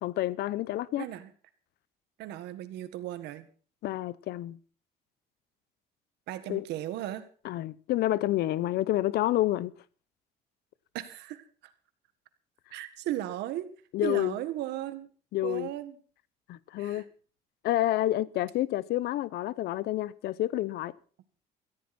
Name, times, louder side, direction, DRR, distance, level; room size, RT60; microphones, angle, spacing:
voice 1, 0.0-1.1 3.8-4.6 6.5-6.6 7.4-9.7 13.9-14.3 15.3-15.7 16.5-17.1 17.6-20.9, left 15 dB, 75° left, 0.8 m, -29 dB
voice 2, 1.0-1.3 2.2-3.5 6.3-7.3 10.9-11.7 12.7-13.7 14.0-15.1 15.4-16.0 16.8-17.0, right 13 dB, 85° right, 1.8 m, -36 dB
17.0 x 14.5 x 4.3 m
cardioid pair, 110°, 17 cm